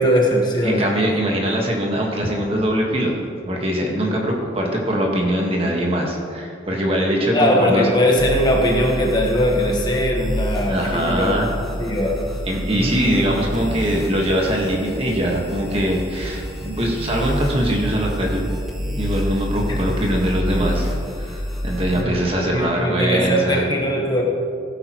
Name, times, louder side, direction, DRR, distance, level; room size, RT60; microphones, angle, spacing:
voice 1, 0.0-1.0 7.3-11.3 11.8-12.2 12.7-13.2 19.7-19.8 21.9-22.3 22.5-24.2, equal, 25° left, -1 dB, 1.3 m, -20 dB
voice 2, 0.6-3.1 3.4-7.9 10.7-11.5 12.4-18.5 19.0-20.9 21.2-23.6, right 1 dB, 30° right, -1 dB, 1.5 m, -22 dB
sound 1, 8.2-22.0, equal, ahead, 1.5 m, -28 dB
15.5 x 8.9 x 3.0 m, 2.4 s
head